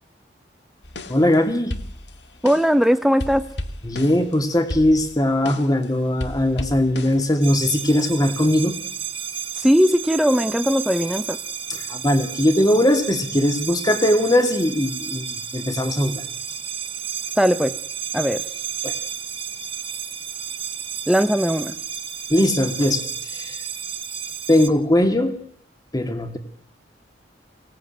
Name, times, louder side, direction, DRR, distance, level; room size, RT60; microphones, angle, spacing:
sound 1, 0.8-1.4 1.7-2.8 3.2-5.8 6.2-7.6, left 1 dB, 80° left, 1.9 m, -33 dB
voice 1, 1.1-1.7 3.8-8.7 11.9-15.3 15.5-16.2 18.8-18.9 22.3-23.6 24.5-25.3 25.9-26.4, left 1 dB, 20° left, 8 dB, 2.5 m, -20 dB
voice 2, 2.4-3.5 9.6-11.4 17.4-17.7 18.1-18.4 21.1-21.7, equal, ahead, 10 dB, 0.9 m, -19 dB
sound 2, 7.4-24.7, right 8 dB, 35° right, 2.0 m, -32 dB
24.0 x 18.0 x 9.2 m, 0.67 s
head